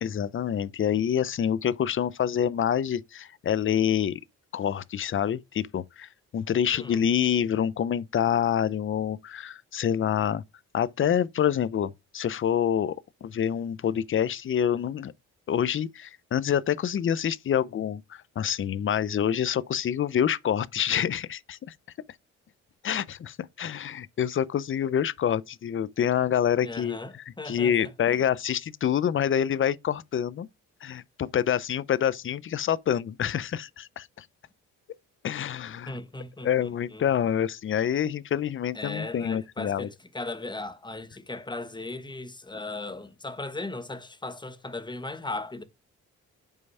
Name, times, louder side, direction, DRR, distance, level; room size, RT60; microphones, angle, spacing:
voice 1, 0.0-4.2 4.5-10.4 10.7-13.0 13.2-15.1 15.5-21.7 22.8-30.5 30.8-34.3 35.2-35.9 36.4-39.9, left 9 dB, 45° left, 0.6 m, -27 dB
voice 2, 26.6-28.2 35.9-37.0 38.7-45.6, left 2 dB, 15° left, 1.1 m, -37 dB
5.5 x 4.6 x 5.5 m
cardioid pair, 90°, 30 cm